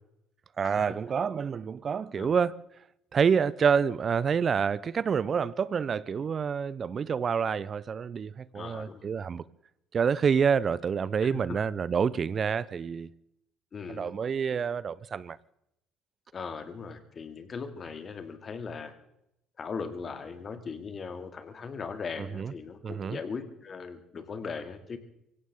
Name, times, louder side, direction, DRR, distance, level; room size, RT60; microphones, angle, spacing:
voice 1, 0.6-2.6 3.1-9.4 9.9-13.1 13.9-15.4 22.3-22.5 22.8-23.2, right 6 dB, 45° right, 0.6 m, -27 dB
voice 2, 8.5-9.1 11.1-11.6 13.7-14.1 16.3-18.9 19.6-25.0, left 5 dB, 40° left, 2.3 m, -39 dB
24.0 x 16.5 x 3.7 m
hypercardioid pair, 55°, 0 cm